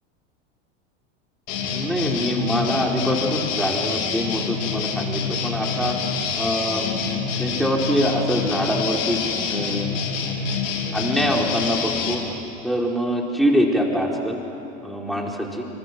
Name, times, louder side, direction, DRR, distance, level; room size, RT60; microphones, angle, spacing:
sound 1, 1.5-12.2, left 5 dB, 75° left, 3.5 m, -27 dB
voice 1, 1.7-6.0 6.3-6.9 7.4-9.2 9.5-9.9 10.9-12.2 12.6-14.4 14.8-15.6, equal, ahead, -1 dB, 4.2 m, -24 dB
26.5 x 23.0 x 7.7 m, 2.8 s
hypercardioid pair, 100°, 37 cm